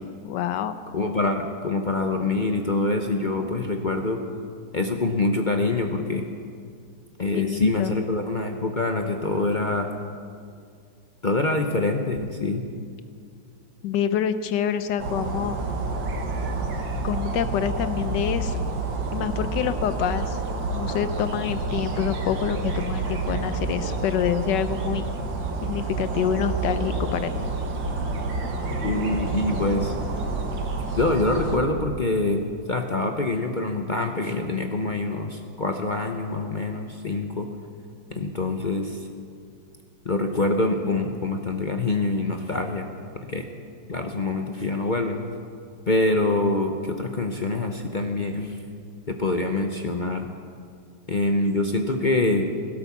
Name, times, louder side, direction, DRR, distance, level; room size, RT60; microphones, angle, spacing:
voice 1, 0.2-0.7 7.3-8.0 13.8-15.6 17.0-18.6 19.1-20.4 20.7-25.0 25.7-27.3, left 9 dB, 75° left, 12 dB, 1.4 m, -26 dB
voice 2, 0.9-4.2 4.7-6.2 7.2-9.9 11.2-12.6 28.8-29.9 30.9-32.4 32.7-37.5 38.1-39.0 40.0-42.8 43.3-43.5 43.9-45.2 45.9-48.6 49.1-50.3 51.1-52.4, left 2 dB, 45° left, 4 dB, 0.6 m, -25 dB
sound 1, 15.0-31.6, right 3 dB, 85° right, 2.2 m, -29 dB
16.5 x 12.0 x 7.2 m, 2.2 s
omnidirectional pair, 2.0 m